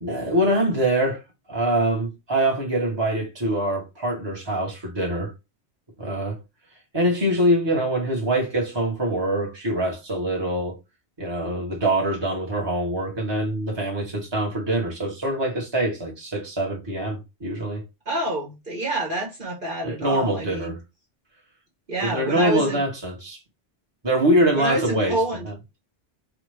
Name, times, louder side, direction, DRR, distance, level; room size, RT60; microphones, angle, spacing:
voice 1, 0.0-1.2 1.5-5.3 6.0-6.4 6.9-10.8 11.2-17.8 19.8-20.8 22.0-23.4 24.0-25.2 25.4-25.5, right 1 dB, 20° right, 1.4 m, -24 dB
voice 2, 18.0-20.7 21.9-22.8 24.5-25.5, right 1 dB, 50° right, 1.5 m, -27 dB
4.9 x 2.4 x 3.3 m
omnidirectional pair, 1.2 m